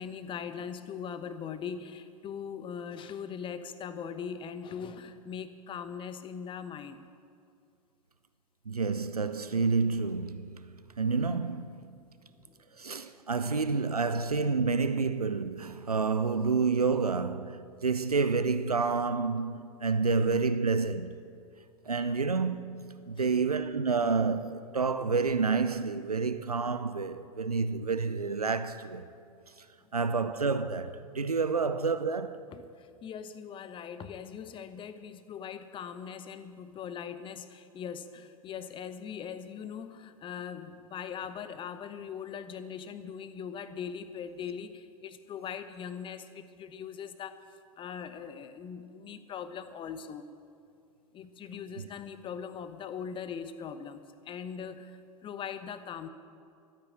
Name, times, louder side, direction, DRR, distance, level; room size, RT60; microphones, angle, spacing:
voice 1, 0.0-7.1 12.5-12.6 23.1-23.4 32.5-47.4 47.8-50.3 51.1-54.0 54.2-56.1, left 7 dB, 25° left, 1.0 m, -40 dB
voice 2, 8.7-12.0 12.8-21.2 21.9-22.8 23.1-29.1 29.9-32.5 51.8-51.9, right 4 dB, 90° right, 0.6 m, -29 dB
13.5 x 9.2 x 8.7 m
figure-of-eight pair, 90°, 19 cm